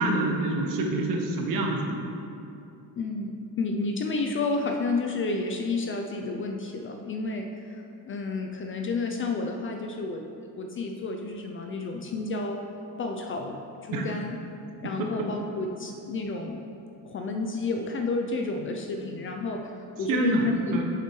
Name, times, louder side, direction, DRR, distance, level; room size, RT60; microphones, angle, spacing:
voice 1, 0.0-2.0 13.9-14.0 15.0-15.1 20.0-20.4 20.7-20.8, right 2 dB, 70° right, 2 dB, 1.0 m, -26 dB
voice 2, 3.0-10.3 10.6-12.6 13.0-14.4 14.8-16.6 17.0-19.6 20.0-20.8, left 3 dB, 35° left, 3 dB, 0.4 m, -31 dB
6.8 x 5.7 x 3.1 m, 2.7 s
cardioid pair, 125°, 35 cm